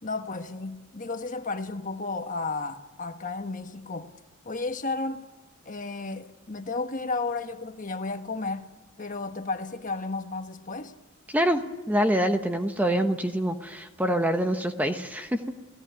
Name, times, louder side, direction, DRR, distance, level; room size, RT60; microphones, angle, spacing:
voice 1, 0.0-4.1 4.4-5.3 5.6-8.7 9.0-10.9, left 3 dB, 40° left, 1.3 m, -33 dB
voice 2, 11.3-15.4, equal, 5° right, 1.1 m, -25 dB
29.5 x 17.0 x 9.5 m
head